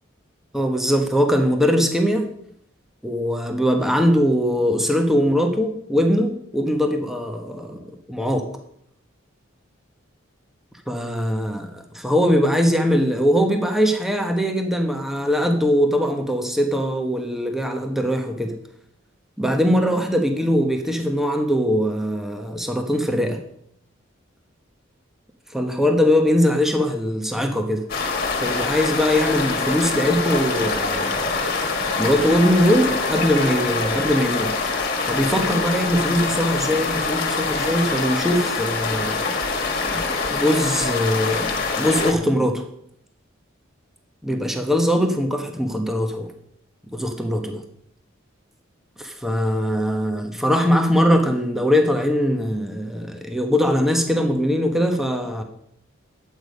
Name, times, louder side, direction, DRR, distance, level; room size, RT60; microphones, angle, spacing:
voice 1, 0.5-2.3 3.0-8.5 10.9-18.5 19.4-23.4 25.5-27.8 28.4-31.3 32.0-34.5 35.0-39.2 39.9-42.6 44.2-46.3 46.9-47.6 49.0-55.4, equal, ahead, 4 dB, 1.1 m, -21 dB
sound 1, 27.9-42.1, left 4 dB, 50° left, 1.8 m, -25 dB
sound 2, 29.7-35.2, right 3 dB, 45° right, 3.1 m, -36 dB
11.0 x 8.3 x 5.3 m, 0.71 s
head